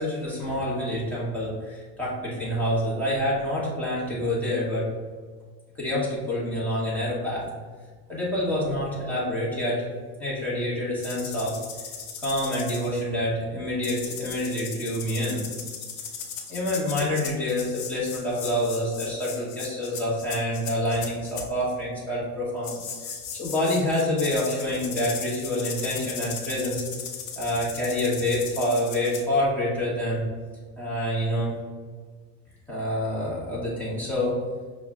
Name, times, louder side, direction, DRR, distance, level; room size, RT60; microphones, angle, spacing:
voice 1, 0.0-4.9 5.7-7.5 8.1-9.8 10.2-11.6 12.2-15.4 16.5-22.8 23.0-26.8 27.4-30.3 30.8-31.5 32.7-34.4, left 1 dB, 5° left, -7 dB, 0.8 m, -27 dB
sound 1, 11.0-13.0 13.8-21.4 22.6-29.2, left 6 dB, 55° left, 0.8 m, -37 dB
5.4 x 2.1 x 3.5 m, 1.5 s
cardioid pair, 170°, 43 cm